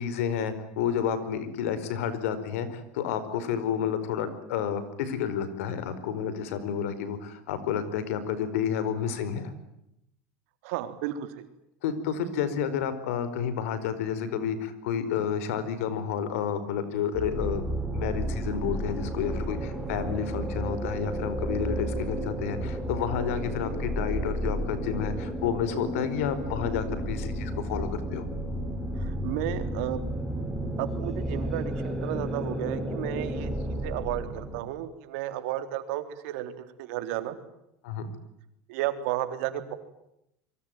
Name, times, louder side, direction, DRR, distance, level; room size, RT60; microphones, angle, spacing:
voice 1, 0.0-9.5 11.8-17.6 17.9-28.3 37.8-38.1, left 8 dB, 85° left, 13 dB, 4.8 m, -30 dB
voice 2, 10.6-11.5 29.0-30.0 30.8-33.5 33.8-36.5 36.8-37.4 38.7-39.7, right 13 dB, 75° right, 9 dB, 3.6 m, -33 dB
sound 1, 17.1-34.6, right 1 dB, 5° left, 5.2 m, -32 dB
27.0 x 23.5 x 9.3 m, 0.81 s
supercardioid pair, 140°, 7 cm